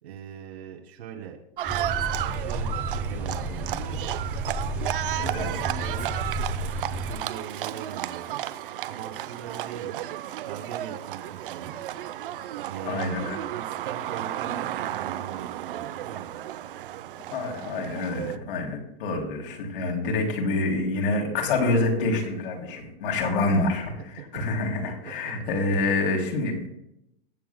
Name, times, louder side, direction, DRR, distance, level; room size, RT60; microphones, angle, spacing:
voice 1, 0.0-1.4 2.2-4.0 5.1-6.5 6.9-8.4 8.8-10.2 10.4-11.9 12.6-13.2 13.5-16.4 25.2-25.3, right 8 dB, 90° right, -1 dB, 2.7 m, -40 dB
Livestock farm animals working animals, 1.6-18.4, right 12 dB, 60° right, 0.7 m, -33 dB
sound 1, 1.7-7.1, right 2 dB, 5° right, 0.8 m, -31 dB
voice 2, 5.0-5.5 12.8-13.4 17.3-26.7, left 2 dB, 60° left, 1 dB, 3.0 m, -27 dB
21.5 x 7.7 x 2.2 m, 0.80 s
supercardioid pair, 170°, 30 cm